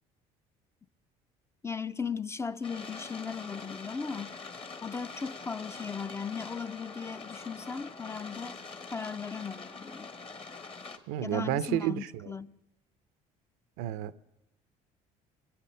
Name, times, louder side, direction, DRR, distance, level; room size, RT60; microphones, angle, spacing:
voice 1, 1.6-4.4 4.8-8.5 8.9-10.1 11.2-12.6, left 5 dB, 15° left, 0.5 m, -37 dB
sound 1, 2.6-11.0, left 4 dB, 35° left, 1.3 m, -44 dB
voice 2, 11.1-12.3 13.8-14.2, right 13 dB, 85° right, 0.6 m, -31 dB
22.5 x 8.4 x 6.6 m
supercardioid pair, 85°, 16 cm